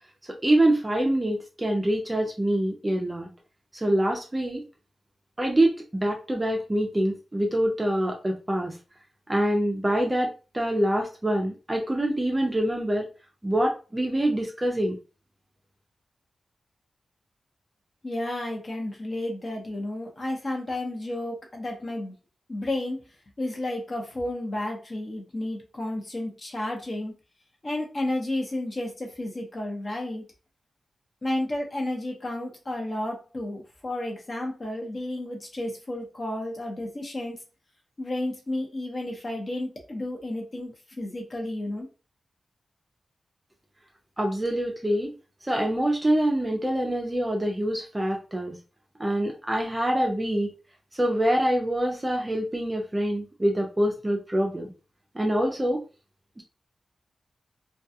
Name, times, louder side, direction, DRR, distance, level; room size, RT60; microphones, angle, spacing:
voice 1, 0.3-3.3 3.7-4.6 5.4-8.7 9.3-13.1 13.4-15.0 44.2-45.1 45.5-48.6 49.0-50.5 51.0-54.7 55.1-55.8 56.4-56.5, right 1 dB, 15° right, 1 dB, 0.5 m, -25 dB
voice 2, 18.0-22.1 22.5-23.0 23.4-27.1 27.6-30.2 31.2-37.4 38.0-41.9, left 1 dB, 40° left, 0 dB, 0.8 m, -32 dB
2.3 x 2.2 x 2.7 m, 0.32 s
wide cardioid pair, 110°, 0 cm